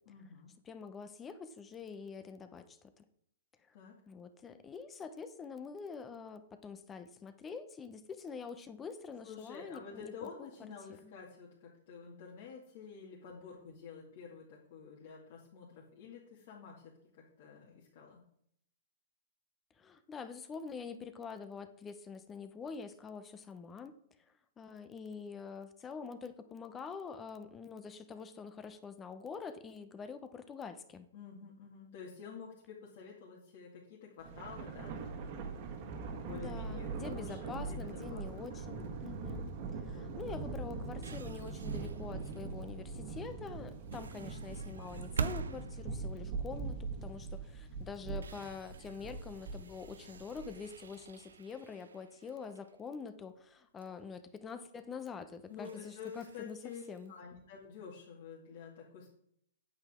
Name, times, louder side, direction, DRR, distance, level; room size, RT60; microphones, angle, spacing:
voice 1, 0.1-0.6 3.7-4.0 9.2-18.2 31.1-35.6 36.2-39.2 39.9-40.2 55.5-59.1, left 6 dB, 55° left, -4 dB, 2.4 m, -50 dB
voice 2, 0.7-3.0 4.1-10.5 11.0-11.1 19.8-23.9 24.6-31.1 36.3-39.5 39.8-56.6 56.9-57.1, left 5 dB, 20° left, 11 dB, 0.9 m, -46 dB
Thunder, 34.2-50.8, right 4 dB, 45° right, 1.7 m, -42 dB
sound 1, 40.6-42.7 43.7-47.1 47.5-47.6 48.0-53.5 53.8-53.9 54.8-55.0 55.4-57.2, right 6 dB, 85° right, 0.6 m, -46 dB
8.8 x 8.2 x 3.7 m, 0.71 s
hypercardioid pair, 130°, 0 cm